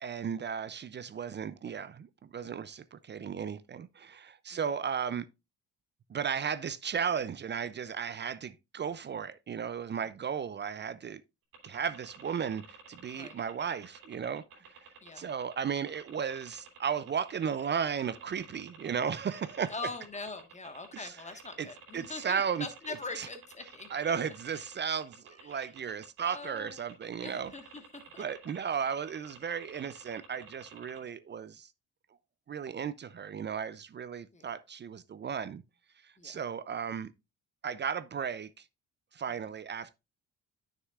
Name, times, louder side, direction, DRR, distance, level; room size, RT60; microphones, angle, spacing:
voice 1, 0.0-5.2 6.1-11.2 11.6-14.9 15.2-19.7 20.9-21.2 21.6-21.7 21.9-22.7 23.2-23.3 23.9-27.5 28.2-31.7 32.5-35.6 36.0-37.1 37.6-38.6 39.1-39.9, right 7 dB, 35° right, 0.4 m, -35 dB
sound 1, 11.5-31.0, right 7 dB, 90° right, 2.9 m, -52 dB
voice 2, 19.7-23.9 25.4-25.6 26.2-26.8 27.1-28.2 34.3-34.6 36.2-36.4, left 3 dB, 20° left, 1.4 m, -43 dB
9.2 x 6.6 x 2.4 m
cardioid pair, 95°, 33 cm